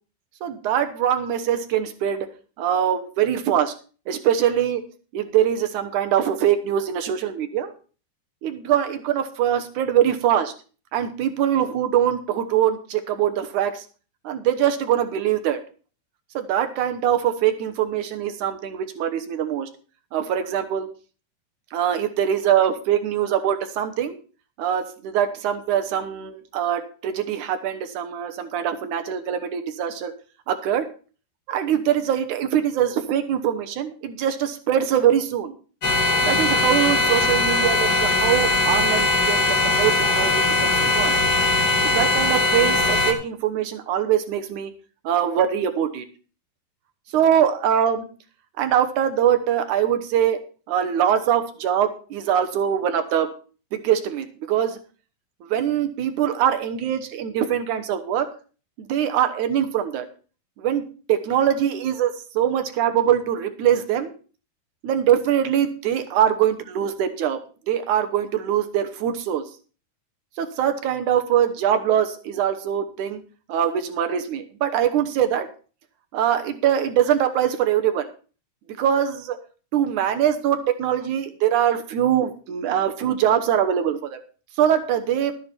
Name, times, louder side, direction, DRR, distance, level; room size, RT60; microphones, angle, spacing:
voice 1, 0.4-2.3 2.6-3.7 4.1-4.8 5.1-7.7 8.4-10.5 10.9-13.9 14.2-15.6 16.3-19.7 20.1-20.9 21.7-24.2 24.6-30.1 30.5-30.9 31.5-35.5 36.3-41.2 41.8-44.7 45.0-46.0 47.1-48.1 48.6-50.4 50.7-53.3 53.7-54.8 55.4-58.3 58.9-60.1 60.6-64.1 64.8-67.4 67.7-69.4 70.4-73.2 73.5-75.5 76.1-78.1 78.8-79.4 79.7-84.2 84.6-85.3, right 9 dB, 70° right, 8 dB, 1.9 m, -23 dB
sound 1, 35.8-43.1, left 2 dB, 35° left, 1.7 m, -20 dB
12.5 x 10.0 x 4.4 m, 0.37 s
omnidirectional pair, 4.7 m